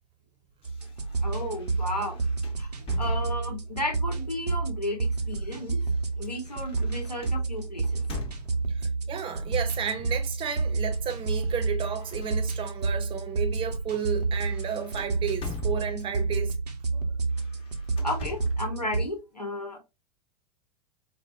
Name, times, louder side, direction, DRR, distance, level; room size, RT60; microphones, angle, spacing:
sound 1, 0.6-3.7 4.7-8.9 9.9-10.3 10.6-12.9 13.3-13.5 13.9-16.3 17.2-18.7, left 4 dB, 30° left, 0.9 m, -45 dB
sound 2, 0.6-19.1, right 3 dB, 80° right, 0.7 m, -30 dB
voice 1, 1.2-2.2 2.6-5.8 6.2-8.0 16.9-17.0 18.0-19.8, left 1 dB, 90° left, 1.0 m, -34 dB
voice 2, 8.7-16.5, right 7 dB, 25° right, 0.7 m, -33 dB
4.1 x 2.1 x 2.4 m
figure-of-eight pair, 85°, 20 cm